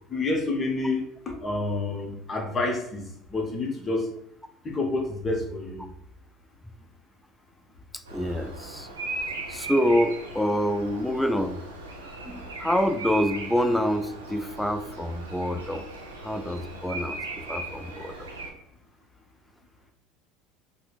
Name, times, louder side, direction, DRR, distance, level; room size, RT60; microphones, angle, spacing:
voice 1, 0.1-1.1 1.4-4.1 4.6-5.8, left 2 dB, 30° left, 1 dB, 0.8 m, -28 dB
voice 2, 7.9-8.9 9.5-11.6 12.2-15.9 16.2-18.2, equal, 5° left, 9 dB, 0.3 m, -27 dB
Bird vocalization bird call bird song, 8.1-18.5, right 2 dB, 85° right, 0.6 m, -38 dB
4.2 x 2.1 x 2.4 m, 0.73 s
figure-of-eight pair, 70°, 0 cm